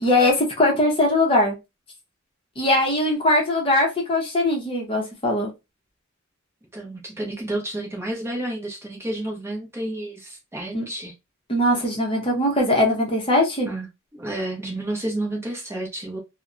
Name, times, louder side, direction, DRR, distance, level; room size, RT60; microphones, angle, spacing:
voice 1, 0.0-1.6 2.6-5.5 10.7-10.9 11.5-13.7, left 1 dB, 25° left, 0.6 m, -21 dB
voice 2, 6.7-11.1 13.7-13.9 14.1-16.2, right 1 dB, 10° right, 0.6 m, -30 dB
2.7 x 2.0 x 2.4 m
head